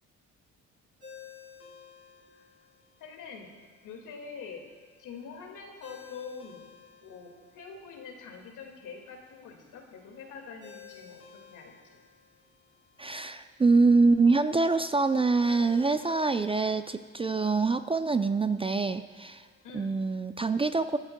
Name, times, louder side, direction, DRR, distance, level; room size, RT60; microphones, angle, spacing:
Ringtone, 1.0-20.1, left 6 dB, 45° left, 2.4 m, -56 dB
voice 1, 3.0-3.5 3.8-4.6 5.0-6.7 7.0-11.2 11.5-12.0 19.6-20.0, left 5 dB, 70° left, 2 dB, 2.0 m, -45 dB
voice 2, 13.0-19.5 19.7-21.0, right 3 dB, 15° right, 10 dB, 0.4 m, -25 dB
21.5 x 10.5 x 2.2 m, 1.4 s
supercardioid pair, 65°, 32 cm